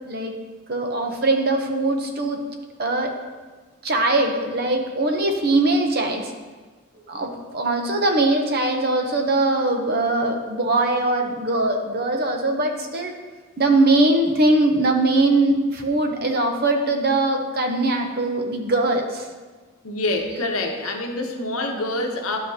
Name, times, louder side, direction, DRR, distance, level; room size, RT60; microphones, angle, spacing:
voice 1, 0.7-2.4 2.8-3.1 3.8-6.3 7.1-13.2 13.6-19.3 20.8-20.9, right 2 dB, 45° right, 4 dB, 0.8 m, -21 dB
voice 2, 19.8-22.4, left 2 dB, 90° left, 3 dB, 0.9 m, -26 dB
11.0 x 5.8 x 2.8 m, 1.3 s
head